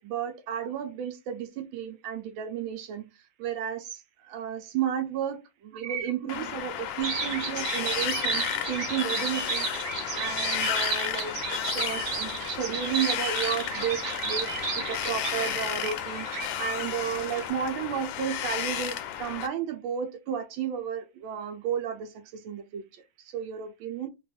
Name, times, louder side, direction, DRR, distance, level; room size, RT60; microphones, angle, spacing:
voice 1, 0.0-3.1 3.4-9.7 10.1-14.0 14.2-16.3 16.6-22.8 23.2-24.1, right 8 dB, 80° right, 1.3 m, -33 dB
Wind, 6.3-19.5, left 10 dB, 75° left, 1.2 m, -33 dB
sound 1, 7.0-17.5, right 5 dB, 60° right, 0.8 m, -33 dB
3.4 x 2.3 x 3.7 m
omnidirectional pair, 2.2 m